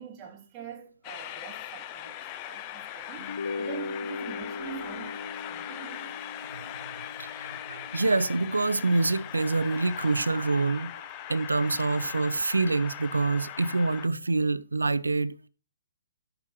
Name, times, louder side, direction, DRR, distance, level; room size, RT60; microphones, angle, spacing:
voice 1, 0.0-6.2, right 9 dB, 25° right, 3.1 m, -44 dB
Train, 1.0-14.1, left 12 dB, 30° left, 0.8 m, -40 dB
sound 1, 3.2-9.7, left 4 dB, 60° left, 1.0 m, -39 dB
voice 2, 7.2-10.9 11.3-15.5, right 3 dB, 85° right, 0.7 m, -26 dB
17.0 x 6.5 x 3.1 m
figure-of-eight pair, 130°, 0 cm